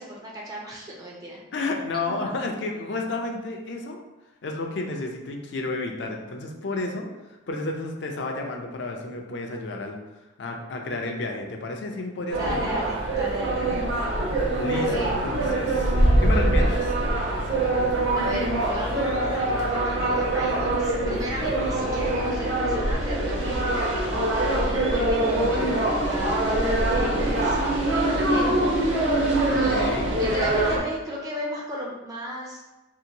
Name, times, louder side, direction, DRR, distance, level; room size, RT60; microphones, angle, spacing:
voice 1, 0.0-1.4 2.1-2.2 12.4-14.1 14.7-15.1 18.1-28.9 29.6-32.6, right 1 dB, 20° right, -3 dB, 0.3 m, -35 dB
voice 2, 1.5-4.0 4.4-7.1 7.5-10.0 10.4-12.8 14.6-15.9 16.2-16.9 29.5-30.1, left 2 dB, 55° left, 2 dB, 0.4 m, -31 dB
sound 1, 12.3-30.8, right 1 dB, 65° right, 0.6 m, -23 dB
2.8 x 2.5 x 2.7 m, 1.1 s
head